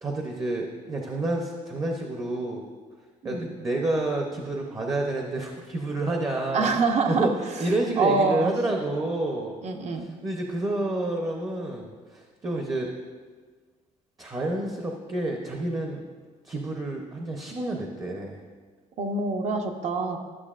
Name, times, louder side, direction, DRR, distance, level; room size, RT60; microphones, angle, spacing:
voice 1, 0.0-2.6 3.2-6.7 7.1-9.6 9.9-12.9 14.2-16.0 16.4-18.4, right 2 dB, 25° right, 1 dB, 0.7 m, -29 dB
voice 2, 6.5-7.3 8.0-8.5 9.6-10.1 19.0-20.2, right 4 dB, 55° right, 5 dB, 0.8 m, -25 dB
12.0 x 6.6 x 2.5 m, 1.5 s
cardioid pair, 125°, 14 cm